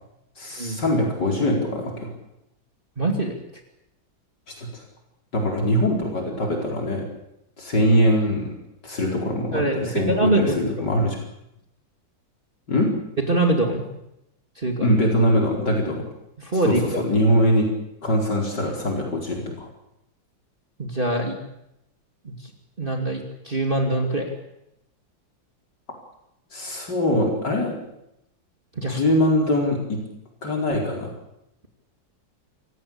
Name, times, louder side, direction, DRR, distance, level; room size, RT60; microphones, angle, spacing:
voice 1, 0.4-2.1 4.5-4.8 5.3-7.1 7.6-8.5 8.8-11.2 12.7-12.9 14.8-16.0 16.6-17.7 18.0-19.7 26.5-27.8 28.8-30.0 30.4-31.1, equal, 65° left, 0 dB, 5.1 m, -22 dB
voice 2, 3.0-3.3 9.5-10.7 13.3-13.9 14.6-14.9 16.4-17.0 20.8-21.4 22.2-22.5 22.8-24.3 28.8-29.0, right 2 dB, 25° right, 2 dB, 2.8 m, -24 dB
27.5 x 15.5 x 8.6 m, 0.84 s
omnidirectional pair, 2.0 m